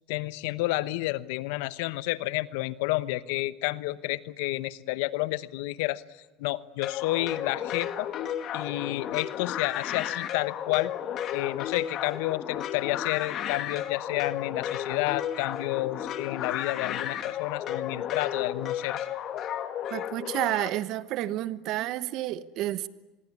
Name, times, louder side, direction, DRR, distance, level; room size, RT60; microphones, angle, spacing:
voice 1, 0.1-6.0 6.4-8.1 8.5-10.9 11.3-19.0, left 18 dB, 75° left, 16 dB, 1.0 m, -30 dB
sound 1, 6.8-20.7, left 10 dB, 50° left, 2.2 m, -33 dB
voice 2, 19.9-22.9, right 14 dB, 60° right, 16 dB, 1.2 m, -30 dB
26.0 x 22.0 x 9.7 m, 1.2 s
supercardioid pair, 100°, 0 cm